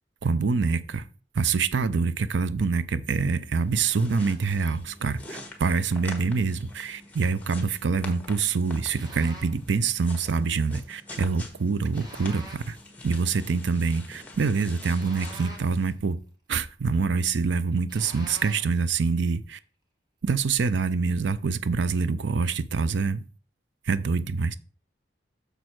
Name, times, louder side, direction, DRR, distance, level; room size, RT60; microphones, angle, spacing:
voice 1, 0.2-1.1 1.3-12.8 13.0-16.2 16.5-19.6 20.2-23.2 23.9-24.6, right 4 dB, 70° right, 0.5 m, -25 dB
sound 1, 3.5-15.9, left 2 dB, 10° left, 1.3 m, -45 dB
sound 2, 8.9-9.6 11.9-12.8 14.9-15.9 17.9-18.8, equal, 20° right, 1.3 m, -45 dB
6.7 x 6.4 x 4.5 m
head